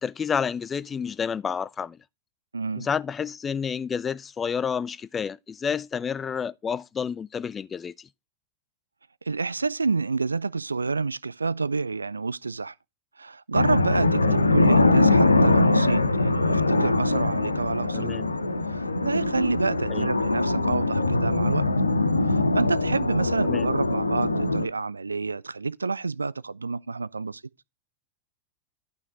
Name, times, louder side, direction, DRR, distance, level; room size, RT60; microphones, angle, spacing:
voice 1, 0.0-2.0 2.8-7.9 14.2-14.4 17.9-18.3 19.9-20.1 23.4-23.7, left 6 dB, 20° left, 0.4 m, -30 dB
voice 2, 2.5-2.9 9.3-12.7 13.2-18.1 18.7-21.6 22.3-27.4, right 4 dB, 80° right, 0.4 m, -28 dB
sound 1, 13.5-24.7, left 2 dB, 80° left, 0.7 m, -22 dB
11.5 x 5.6 x 3.8 m
figure-of-eight pair, 90°, 0 cm